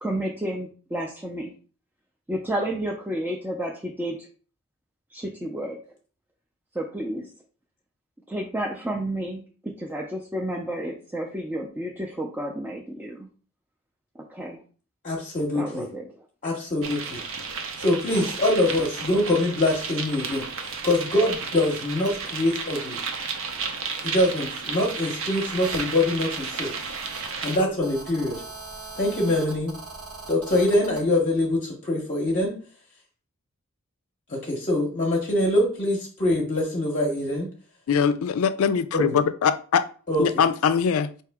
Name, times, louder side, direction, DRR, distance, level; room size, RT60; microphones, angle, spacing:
voice 1, 0.0-1.5 2.3-4.3 5.1-5.8 6.7-7.3 8.3-13.3 14.2-14.6 15.5-16.1, right 1 dB, 10° right, 0.4 m, -31 dB
voice 2, 15.0-15.9 16.4-17.2 17.8-23.0 24.0-26.7 27.4-28.4 29.0-29.7 30.3-32.5 34.3-37.5 38.9-39.0 40.1-40.2, left 1 dB, 35° left, 0.7 m, -24 dB
sound 1, 16.8-27.6, right 5 dB, 65° right, 0.7 m, -33 dB
Telephone, 25.6-31.0, right 3 dB, 85° right, 1.6 m, -41 dB
voice 3, 37.9-39.8 40.2-41.1, left 7 dB, 75° left, 0.4 m, -22 dB
4.7 x 2.8 x 3.4 m
head